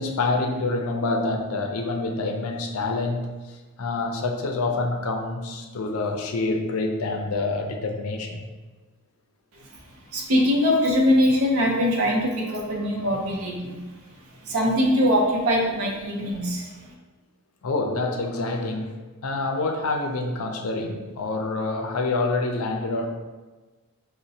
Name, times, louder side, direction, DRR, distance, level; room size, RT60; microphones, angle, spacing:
voice 1, 0.0-8.5 17.6-23.1, left 3 dB, 70° left, 3 dB, 0.5 m, -27 dB
voice 2, 10.1-13.8 14.4-16.7, left 1 dB, 70° right, -1 dB, 0.7 m, -22 dB
5.0 x 2.1 x 2.7 m, 1.3 s
head